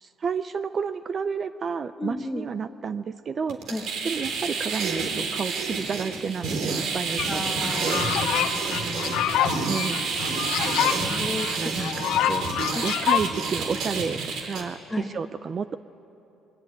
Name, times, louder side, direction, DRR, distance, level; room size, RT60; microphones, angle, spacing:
voice 1, 0.0-3.6 4.0-8.1 9.7-10.0 11.5-12.5 12.8-15.8, right 6 dB, 35° right, 12 dB, 0.5 m, -31 dB
voice 2, 2.0-2.5 3.7-3.8 7.2-7.9 8.2-9.1 10.3-10.7 11.0-11.7 12.7-12.9 14.9-15.1, left 2 dB, 10° left, 5 dB, 1.6 m, -34 dB
sound 1, 3.5-14.6, right 4 dB, 65° right, 3.8 m, -29 dB
sound 2, 7.2-7.3 7.6-13.2, left 11 dB, 70° left, 1.2 m, -26 dB
26.5 x 22.0 x 9.3 m, 3.0 s
cardioid pair, 150°, 0 cm